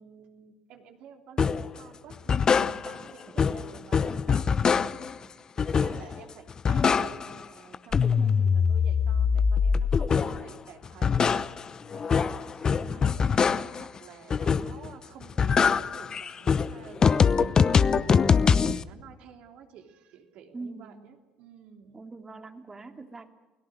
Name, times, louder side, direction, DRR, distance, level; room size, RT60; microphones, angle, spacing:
voice 1, 0.0-5.5 5.8-11.6 11.8-22.0, right 7 dB, 65° right, 5 dB, 3.2 m, -50 dB
sound 1, 1.4-1.7 2.1-3.1 3.4-5.2 5.6-6.2 6.5-7.4 7.7-10.5 10.8-13.9 14.3-14.9 15.2-18.8, left 6 dB, 35° left, 0.8 m, -23 dB
voice 2, 3.3-3.6 8.2-8.6 20.5-21.1 21.9-23.3, right 3 dB, 25° right, 6 dB, 2.5 m, -43 dB
29.0 x 17.5 x 6.5 m, 1.1 s
supercardioid pair, 80°, 2 cm